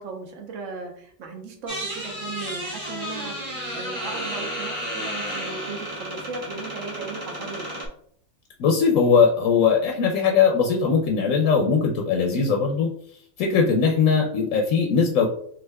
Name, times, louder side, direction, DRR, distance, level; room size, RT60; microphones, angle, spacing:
voice 1, 0.0-3.3 3.7-7.6, right 4 dB, 70° right, 2 dB, 1.1 m, -36 dB
sound 1, 1.7-7.9, equal, 40° right, 1.5 m, -32 dB
voice 2, 8.6-12.9 13.4-15.3, left 5 dB, 85° left, 1 dB, 1.0 m, -20 dB
5.7 x 2.8 x 2.2 m, 0.64 s
omnidirectional pair, 1.4 m